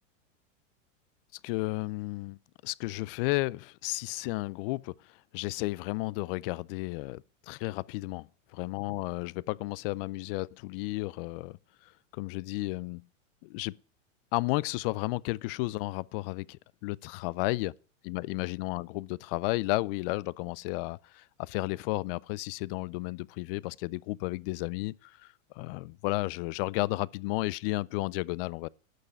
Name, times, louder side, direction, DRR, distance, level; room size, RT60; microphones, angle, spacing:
voice 1, 1.4-2.4 2.6-11.6 11.8-13.0 13.4-13.8 14.3-17.7 18.0-28.7, left 22 dB, 45° left, 0.5 m, -33 dB
11.5 x 6.7 x 8.1 m
hypercardioid pair, 120°, 38 cm